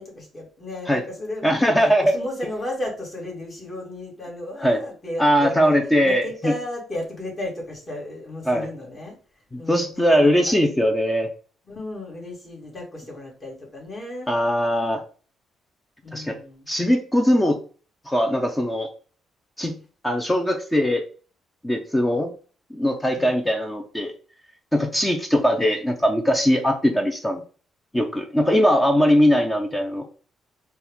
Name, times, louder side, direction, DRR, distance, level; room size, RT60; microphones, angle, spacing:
voice 1, 0.0-9.2 9.6-10.6 11.7-14.3 16.0-16.7 23.2-23.4, left 1 dB, 30° left, -2 dB, 2.2 m, -34 dB
voice 2, 1.4-2.2 4.6-4.8 5.2-6.5 8.5-8.7 9.5-11.3 14.3-15.0 16.1-16.4 16.7-17.6 18.1-18.9 19.6-19.8 20.0-21.0 21.6-22.3 22.7-24.1 24.7-27.4 27.9-30.1, equal, 10° left, 4 dB, 0.6 m, -20 dB
4.4 x 2.4 x 3.5 m, 0.39 s
cardioid pair, 90°, 0 cm